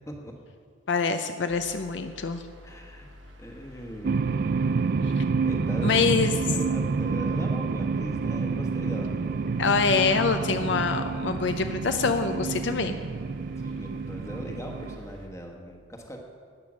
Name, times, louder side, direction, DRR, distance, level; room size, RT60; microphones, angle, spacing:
voice 1, 0.9-2.4 5.2-5.3 5.8-6.4 9.6-13.0, left 5 dB, 60° left, 8 dB, 0.5 m, -25 dB
sound 1, 1.5-15.3, left 1 dB, 70° right, 1.3 m, -49 dB
voice 2, 2.6-3.1 3.4-4.2 5.4-9.8 13.6-16.2, equal, 15° left, 1 dB, 1.2 m, -40 dB
sound 2, 4.0-15.0, right 4 dB, 50° right, 0.3 m, -28 dB
13.5 x 8.8 x 6.2 m, 2.2 s
head